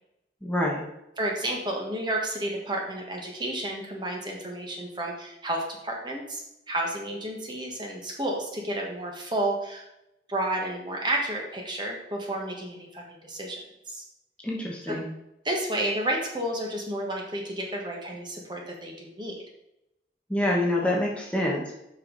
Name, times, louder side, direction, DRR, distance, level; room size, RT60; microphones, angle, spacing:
voice 1, 0.4-0.8 14.4-15.0 20.3-21.8, left 1 dB, 5° left, -3 dB, 1.2 m, -26 dB
voice 2, 1.2-6.4 6.7-9.8 10.3-14.0 14.9-15.0 15.4-19.3, right 1 dB, 25° right, 0 dB, 1.5 m, -31 dB
8.0 x 5.7 x 4.0 m, 0.87 s
head